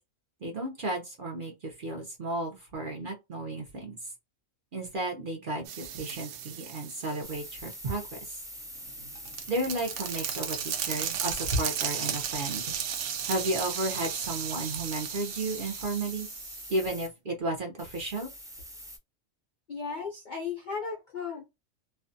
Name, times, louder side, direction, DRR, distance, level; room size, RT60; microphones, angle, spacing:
voice 1, 0.4-4.1 4.7-8.4 9.5-12.8 13.2-16.3 16.7-18.3, right 2 dB, 50° right, 0.7 m, -33 dB
sound 1, 5.6-7.8 8.8-16.7, right 9 dB, 85° right, 1.0 m, -35 dB
sound 2, 7.2-17.1 17.8-19.0, equal, 5° right, 0.3 m, -44 dB
voice 2, 19.7-21.4, left 5 dB, 60° left, 0.5 m, -35 dB
2.5 x 2.2 x 2.5 m
omnidirectional pair, 1.4 m